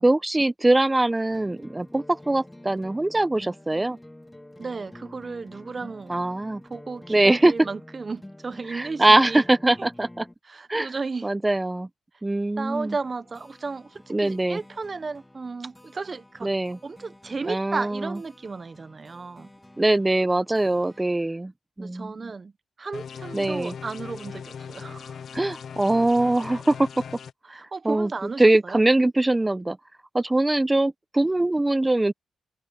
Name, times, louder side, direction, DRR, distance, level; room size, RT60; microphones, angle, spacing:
voice 1, 0.0-4.0 6.1-6.6 7.1-7.5 8.7-10.3 10.7-10.9 11.2-11.9 12.2-12.9 14.1-14.6 16.4-16.8 17.5-18.2 19.8-21.5 21.8-22.3 23.3-23.7 25.3-26.9 27.5-28.1 28.4-29.8 30.1-32.1, right 2 dB, 15° right, 0.9 m, -22 dB
sound 1, 1.3-10.3 12.7-21.0, left 1 dB, 10° left, 2.7 m, -49 dB
voice 2, 4.6-6.2 6.7-9.4 9.8-9.9 10.4-11.3 12.6-16.5 16.8-19.5 21.8-22.5 22.8-25.2 27.5-28.8, right 4 dB, 40° right, 1.1 m, -34 dB
sound 2, 22.9-27.3, left 7 dB, 65° left, 0.6 m, -39 dB
cardioid pair, 60°, 0 cm